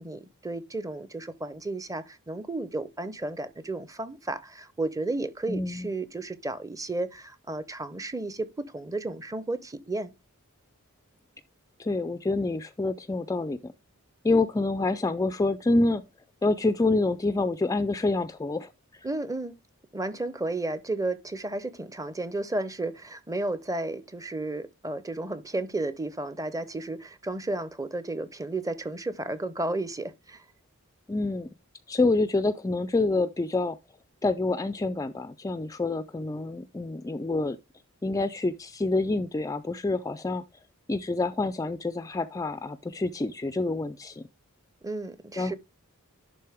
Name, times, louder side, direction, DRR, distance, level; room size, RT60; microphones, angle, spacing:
voice 1, 0.0-10.1 19.0-19.5 19.9-30.4 44.8-45.6, right 2 dB, 15° right, 0.7 m, -33 dB
voice 2, 5.5-5.9 11.8-13.7 14.2-16.0 16.4-18.7 31.1-31.5 31.9-33.8 34.2-37.6 38.0-40.4 40.9-44.2 45.4-45.5, left 2 dB, 15° left, 0.4 m, -27 dB
11.0 x 3.8 x 3.5 m
head